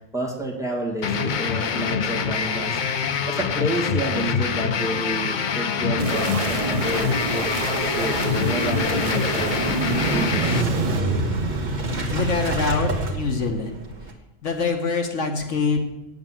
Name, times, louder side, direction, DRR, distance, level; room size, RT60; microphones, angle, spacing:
voice 1, 0.0-2.8 3.2-9.6 10.1-10.5, right 1 dB, ahead, -1 dB, 2.1 m, -30 dB
sound 1, 1.0-10.6, left 6 dB, 50° left, 0.6 m, -25 dB
sound 2, 6.0-11.0, right 5 dB, 55° right, 0.4 m, -28 dB
Motorcycle / Engine starting, 6.9-14.1, right 2 dB, 35° right, 1.4 m, -27 dB
voice 2, 12.1-13.8 14.4-15.8, left 4 dB, 70° left, 4 dB, 1.5 m, -24 dB
9.4 x 8.0 x 7.4 m, 0.92 s
omnidirectional pair, 1.3 m